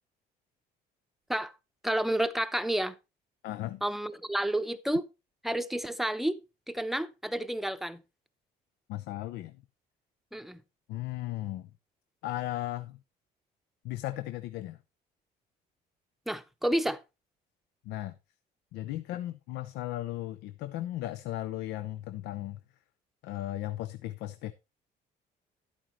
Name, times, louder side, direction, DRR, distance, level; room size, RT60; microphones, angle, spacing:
voice 1, 1.8-2.9 3.8-5.1 5.4-6.4 6.7-8.0 10.3-10.6 16.3-17.0, right 1 dB, ahead, 0.7 m, -30 dB
voice 2, 3.4-3.8 8.9-9.6 10.9-11.7 12.2-13.0 13.8-14.8 17.8-18.2 18.7-22.6 23.2-24.5, left 14 dB, 85° left, 0.6 m, -36 dB
11.5 x 8.9 x 3.0 m
cardioid pair, 110°, 17 cm